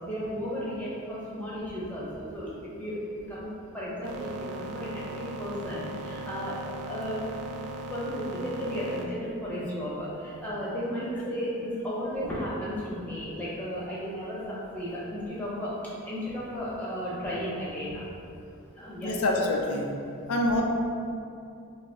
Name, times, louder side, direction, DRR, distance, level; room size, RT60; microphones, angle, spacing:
voice 1, 0.0-2.5 2.8-3.0 3.3-7.3 7.9-15.7 16.0-18.0 18.8-19.1, equal, 5° left, -8 dB, 0.8 m, -34 dB
sound 1, 4.0-9.0, right 2 dB, 75° right, 0.4 m, -38 dB
voice 2, 19.0-19.9 20.3-20.6, left 1 dB, 85° left, 0 dB, 0.5 m, -25 dB
5.0 x 2.0 x 3.6 m, 2.5 s
head